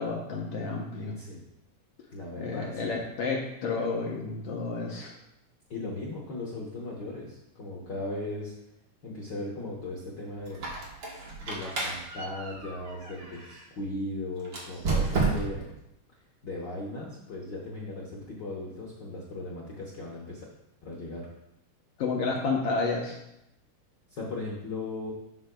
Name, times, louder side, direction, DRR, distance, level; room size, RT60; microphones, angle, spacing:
voice 1, 0.0-1.1 2.4-5.1 22.0-23.2, left 4 dB, 65° left, -1 dB, 1.6 m, -30 dB
voice 2, 2.1-2.9 5.7-8.6 9.0-10.7 11.4-15.7 16.4-20.4 20.8-21.3 24.1-25.1, left 2 dB, 80° left, -3 dB, 0.9 m, -37 dB
Squeak, 10.5-13.6 14.4-15.7, right 3 dB, 50° right, 1.6 m, -31 dB
11.5 x 7.8 x 2.3 m, 0.84 s
omnidirectional pair, 3.9 m